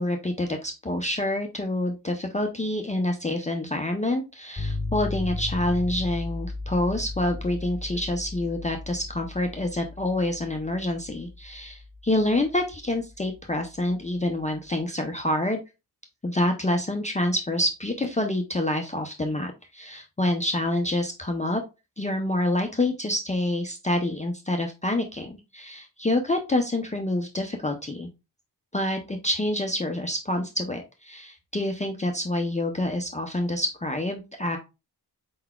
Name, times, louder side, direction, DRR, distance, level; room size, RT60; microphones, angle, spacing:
voice 1, 0.0-15.6 16.2-21.6 22.0-28.1 28.7-34.6, left 1 dB, 20° left, 2 dB, 0.4 m, -27 dB
sound 1, 4.6-14.4, left 2 dB, 10° right, 1.7 m, -36 dB
4.6 x 3.8 x 2.2 m, 0.26 s
wide cardioid pair, 170°, 39 cm